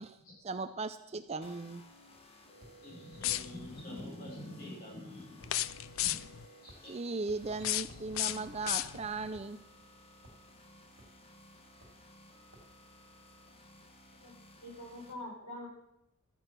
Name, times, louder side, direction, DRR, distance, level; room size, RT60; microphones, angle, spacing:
voice 1, 0.4-1.8 6.9-9.6, right 3 dB, 30° right, 10 dB, 0.4 m, -37 dB
sound 1, 1.4-15.1, left 1 dB, 25° left, 1.3 m, -57 dB
sound 2, 2.6-2.8 3.3-3.5 4.0-4.2 5.4-5.6 6.0-6.2 6.7-6.9 7.3-7.4 7.9-8.0 9.3-9.9 10.2-10.4 11.0-11.2 11.8-12.1 12.5-12.7, equal, 60° right, 2.7 m, -57 dB
voice 2, 2.8-5.4 6.0-6.2 6.6-6.9, left 1 dB, 40° left, -2 dB, 6.3 m, -46 dB
sound 3, 3.1-3.8 5.4-6.5 7.4-9.3, left 14 dB, 65° left, 0.4 m, -35 dB
voice 3, 14.2-15.7, left 1 dB, 85° left, -3 dB, 6.4 m, -45 dB
13.5 x 9.3 x 6.1 m, 0.82 s
head